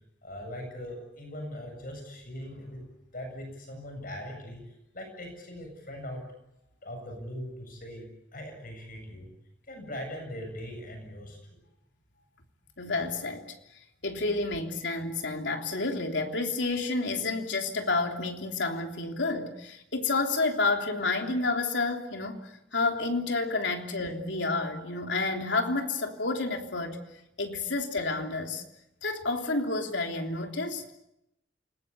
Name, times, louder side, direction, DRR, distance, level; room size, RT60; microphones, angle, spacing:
voice 1, 0.2-2.8 3.1-6.3 6.8-9.3 9.7-11.6, equal, 50° left, 4 dB, 7.8 m, -40 dB
voice 2, 12.8-13.4 14.0-27.0 27.4-28.6 29.0-30.8, left 3 dB, 85° left, 3 dB, 3.3 m, -30 dB
28.5 x 20.5 x 8.4 m, 0.86 s
head